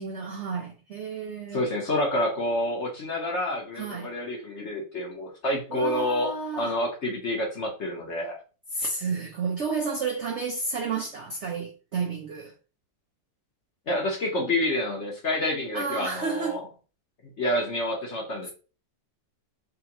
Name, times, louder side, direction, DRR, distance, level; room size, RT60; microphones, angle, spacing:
voice 1, 0.0-1.7 3.7-4.1 5.7-6.7 8.7-12.5 15.7-16.6, right 4 dB, 85° right, 0.6 m, -31 dB
voice 2, 1.5-8.4 13.9-16.6 17.4-18.5, left 1 dB, 50° left, 1.0 m, -28 dB
3.7 x 3.0 x 2.9 m
omnidirectional pair, 2.0 m